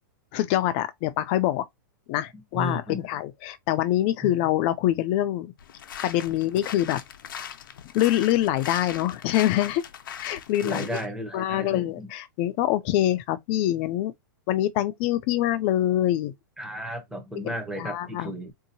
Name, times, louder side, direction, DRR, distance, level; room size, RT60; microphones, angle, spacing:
voice 1, 0.3-1.6 2.1-5.5 6.0-7.0 7.9-9.8 10.2-10.9 11.3-14.1 14.5-16.3 17.4-17.5 17.8-18.3, left 13 dB, 35° left, 0.3 m, -25 dB
voice 2, 2.3-3.0 4.2-4.3 10.6-12.1 16.6-18.5, equal, 5° right, 0.7 m, -34 dB
sound 1, 5.6-11.1, left 9 dB, 85° left, 0.6 m, -40 dB
3.7 x 2.7 x 2.7 m
hypercardioid pair, 155°, 11 cm